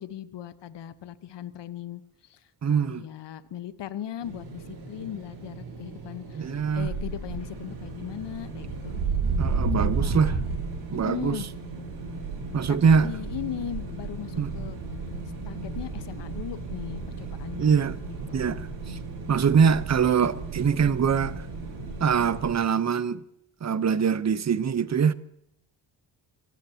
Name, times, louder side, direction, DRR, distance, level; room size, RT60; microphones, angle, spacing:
voice 1, 0.0-8.9 9.8-10.4 11.0-11.4 12.6-14.8 15.5-18.6, left 11 dB, 60° left, 1.3 m, -38 dB
voice 2, 2.6-3.0 6.3-6.9 9.4-10.3 10.9-11.4 12.5-13.1 14.4-14.5 17.6-18.0 18.3-19.0 19.3-21.4 22.0-23.2 23.6-25.1, right 6 dB, 35° right, 1.0 m, -23 dB
sound 1, 4.2-22.5, right 4 dB, 80° right, 6.4 m, -33 dB
25.5 x 16.5 x 3.0 m
hypercardioid pair, 50°, 49 cm